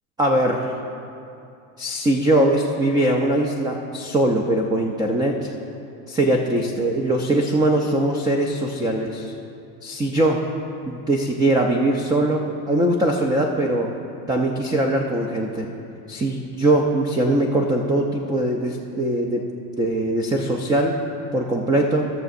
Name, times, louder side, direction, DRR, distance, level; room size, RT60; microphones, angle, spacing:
voice 1, 0.2-0.8 1.8-5.5 6.1-9.3 9.8-10.5 10.9-13.9 14.3-15.7 16.1-19.5 19.8-21.0 21.3-22.1, right 1 dB, 10° right, 1 dB, 0.3 m, -21 dB
16.5 x 6.8 x 2.6 m, 2.6 s
supercardioid pair, 105°, 45 cm